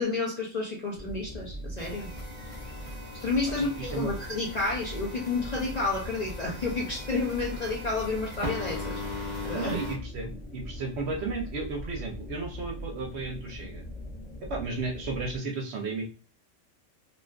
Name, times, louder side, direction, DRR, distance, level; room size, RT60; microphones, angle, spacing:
voice 1, 0.0-2.1 3.2-9.0 9.4-9.8, left 3 dB, 50° left, -3 dB, 0.5 m, -30 dB
sound 1, 0.9-15.4, equal, 5° right, 0.5 m, -41 dB
sound 2, 1.8-10.0, left 2 dB, 30° right, 0.8 m, -40 dB
voice 2, 3.5-4.1 9.5-13.8 14.5-16.0, right 3 dB, 65° right, 1 dB, 0.8 m, -34 dB
2.6 x 2.3 x 2.2 m, 0.36 s
omnidirectional pair, 1.3 m